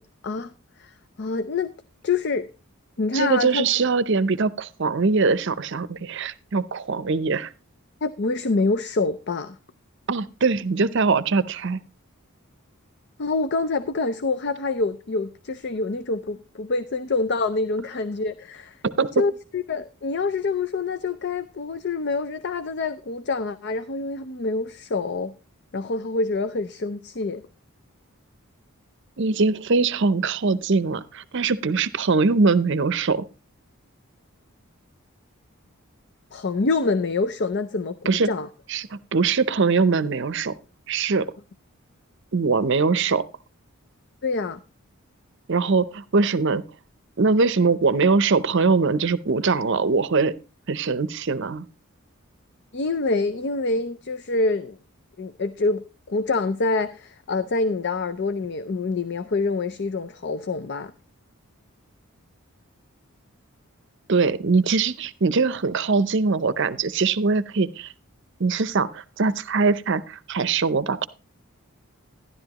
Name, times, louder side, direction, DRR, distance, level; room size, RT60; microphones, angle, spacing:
voice 1, 0.8-1.7 2.0-2.5 3.0-3.7 8.0-9.6 13.2-18.8 19.2-25.3 25.7-27.4 36.3-38.5 44.2-44.6 52.7-54.8 55.2-60.9, left 3 dB, 50° left, 11 dB, 0.5 m, -26 dB
voice 2, 3.1-7.5 10.1-11.8 18.8-19.1 29.2-33.2 38.1-38.3 38.7-40.6 40.9-41.3 42.3-43.2 45.5-46.6 47.2-50.3 50.7-51.7 64.1-67.9 68.4-71.1, right 4 dB, 55° right, 16 dB, 0.6 m, -22 dB
13.0 x 11.0 x 2.9 m, 0.31 s
head